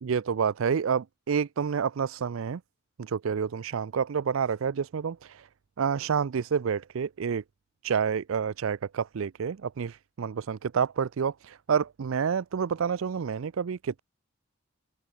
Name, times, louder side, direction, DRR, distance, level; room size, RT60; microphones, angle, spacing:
voice 1, 0.0-2.6 3.0-5.5 5.8-7.4 7.8-14.0, right 6 dB, 75° right, 0.4 m, -29 dB
head